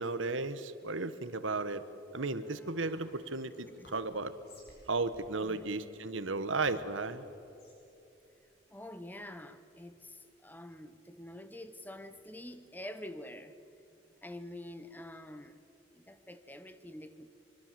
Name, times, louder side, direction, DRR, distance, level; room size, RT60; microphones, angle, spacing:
voice 1, 0.0-1.8 2.1-4.3 4.9-7.2, right 3 dB, 90° right, 13 dB, 1.3 m, -34 dB
Whispering, 2.8-9.4, left 1 dB, 55° left, 7.1 m, -60 dB
voice 2, 8.7-13.6 14.2-15.6 15.9-17.4, left 1 dB, 10° left, 11 dB, 0.9 m, -47 dB
25.0 x 24.5 x 7.6 m, 2.9 s
head